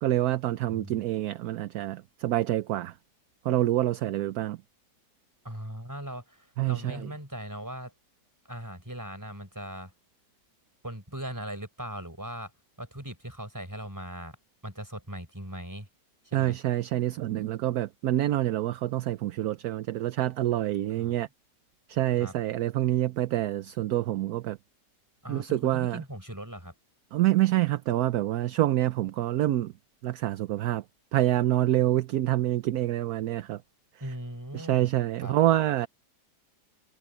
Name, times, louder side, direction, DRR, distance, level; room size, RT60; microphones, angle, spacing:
voice 1, 0.0-2.9 3.4-4.6 6.6-7.1 16.3-21.3 21.9-24.6 25.3-26.0 27.1-29.7 30.0-30.8 31.1-33.6 34.5-35.9, right 14 dB, 70° right, 1.1 m, -27 dB
voice 2, 0.7-1.0 5.4-7.9 8.4-9.9 10.8-12.5 12.8-14.4 14.6-15.9 16.2-16.6 21.0-21.1 22.1-22.3 25.2-26.7 34.0-34.9 35.2-35.3, right 1 dB, 10° right, 4.8 m, -39 dB
omnidirectional pair, 1.8 m